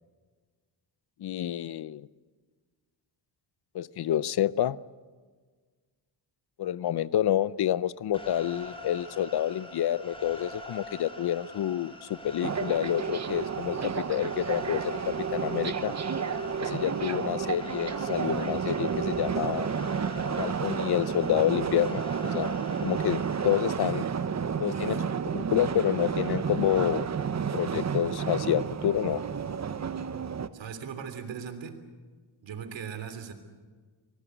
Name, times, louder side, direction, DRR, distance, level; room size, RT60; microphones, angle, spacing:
voice 1, 1.2-2.1 3.7-4.8 6.6-15.9 16.6-19.7 20.4-22.5 22.8-24.1 24.6-27.1 27.5-29.2, left 11 dB, 60° left, 19 dB, 0.7 m, -28 dB
sound 1, 8.1-23.6, left 1 dB, 10° left, 5.0 m, -44 dB
sound 2, 12.4-30.5, right 6 dB, 35° right, 1.1 m, -31 dB
voice 2, 24.8-25.1 30.5-31.8 32.4-33.3, right 7 dB, 70° right, 9 dB, 3.2 m, -39 dB
24.5 x 20.0 x 8.1 m, 1.5 s
cardioid pair, 90°, 45 cm